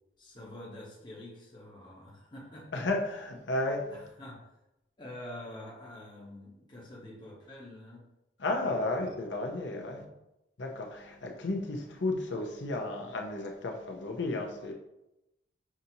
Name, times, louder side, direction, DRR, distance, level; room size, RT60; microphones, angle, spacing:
voice 1, 0.2-2.9 3.9-4.4 5.0-8.1 8.6-9.2 9.9-10.1, left 1 dB, 25° left, 1.0 m, -47 dB
voice 2, 2.7-3.9 8.4-10.0 10.6-14.7, left 2 dB, 85° left, 0.7 m, -33 dB
5.9 x 2.7 x 2.8 m
head